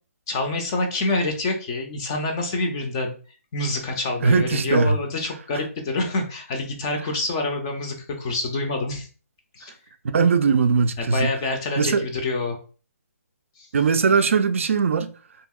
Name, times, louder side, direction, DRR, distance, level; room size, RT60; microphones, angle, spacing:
voice 1, 0.3-3.1 3.5-9.1 9.5-9.7 11.0-12.6 13.6-13.7, left 2 dB, 20° left, 0.4 m, -27 dB
voice 2, 4.2-5.0 10.1-11.3 11.8-12.0 13.7-15.1, right 5 dB, 55° right, 0.3 m, -19 dB
2.7 x 2.7 x 2.3 m
hypercardioid pair, 165°, 8 cm